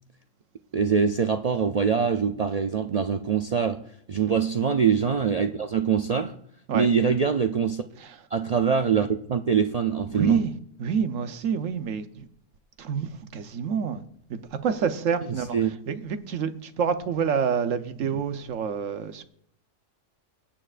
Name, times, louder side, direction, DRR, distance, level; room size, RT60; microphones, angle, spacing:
voice 1, 0.7-3.8 4.1-6.3 6.7-7.8 8.3-10.4 15.5-15.7, right 6 dB, 60° right, 0.4 m, -24 dB
voice 2, 10.1-10.5 10.8-12.3 12.8-14.0 14.3-19.2, right 7 dB, 80° right, 1.2 m, -27 dB
24.5 x 8.9 x 2.5 m
omnidirectional pair, 1.3 m